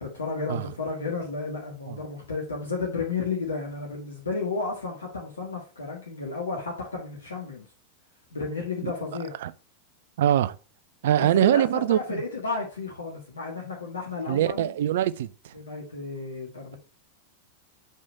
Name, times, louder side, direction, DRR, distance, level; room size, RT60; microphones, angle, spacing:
voice 1, 0.0-7.7 8.3-9.3 11.3-14.7 15.5-16.8, left 3 dB, 75° left, 1.5 m, -32 dB
voice 2, 10.2-10.6 11.0-12.2 14.3-15.5, right 11 dB, 55° right, 0.4 m, -23 dB
4.6 x 4.3 x 5.1 m
figure-of-eight pair, 90°, 0 cm